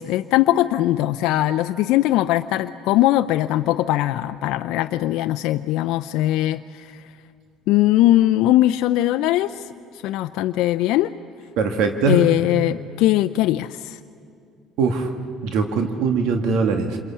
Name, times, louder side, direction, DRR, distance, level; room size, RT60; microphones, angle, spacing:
voice 1, 0.0-7.0 7.7-11.1 12.1-14.0, left 14 dB, 80° left, 8 dB, 0.5 m, -20 dB
voice 2, 11.6-12.3 14.8-15.1 15.4-17.0, right 4 dB, 75° right, 5 dB, 1.9 m, -21 dB
27.5 x 22.5 x 8.5 m, 2.5 s
supercardioid pair, 95°, 0 cm